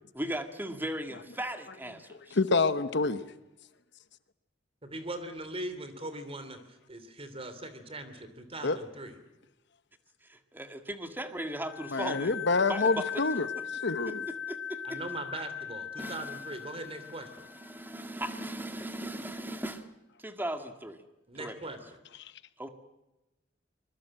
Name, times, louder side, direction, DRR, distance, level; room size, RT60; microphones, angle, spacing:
voice 1, 0.1-2.4 10.2-12.4 12.7-13.2 13.6-13.7 14.1-15.0 16.0-16.4 17.4-19.9 20.2-21.0 21.4-21.8 22.6-22.7, right 1 dB, 10° right, 1.9 m, -38 dB
voice 2, 2.3-3.2 8.6-8.8 11.9-13.5 13.8-14.2, left 3 dB, 65° left, 1.1 m, -27 dB
voice 3, 4.8-9.1 14.8-17.4 21.3-21.8, right 1 dB, 30° right, 3.0 m, -40 dB
sound 1, 11.6-18.1, left 8 dB, 85° left, 1.3 m, -39 dB
24.5 x 21.5 x 7.7 m
head